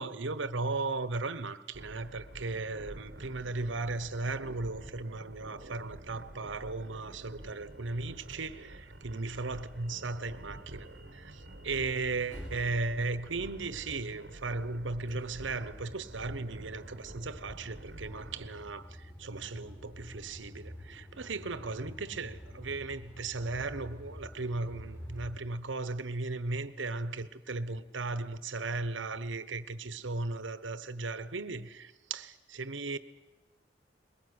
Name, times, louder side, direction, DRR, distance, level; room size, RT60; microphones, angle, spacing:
voice 1, 0.0-8.7 9.0-33.0, right 3 dB, 80° right, 1.0 m, -36 dB
sound 1, 1.7-18.5, right 1 dB, 60° right, 1.2 m, -49 dB
sound 2, 7.4-25.3, equal, 15° left, 7.0 m, -50 dB
21.5 x 18.0 x 9.7 m
head